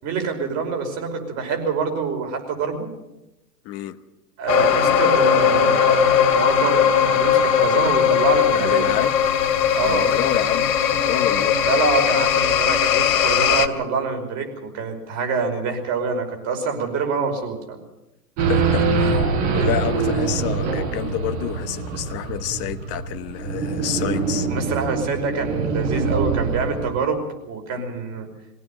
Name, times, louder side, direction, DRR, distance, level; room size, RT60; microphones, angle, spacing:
voice 1, 0.0-2.9 4.4-8.9 9.7-10.2 11.7-17.8 24.5-28.3, right 5 dB, 35° right, 4 dB, 5.5 m, -26 dB
voice 2, 3.6-4.0 8.5-9.2 9.8-11.6 18.5-19.1 19.5-24.5 27.8-27.9, left 12 dB, 30° left, 8 dB, 1.3 m, -29 dB
sound 1, 4.5-13.7, left 8 dB, 55° left, 2.9 m, -18 dB
Race car auto racing / Idling / Accelerating revving vroom, 18.4-27.0, right 4 dB, 50° right, 6.3 m, -24 dB
23.0 x 17.0 x 7.4 m, 0.93 s
hypercardioid pair, 125°, 48 cm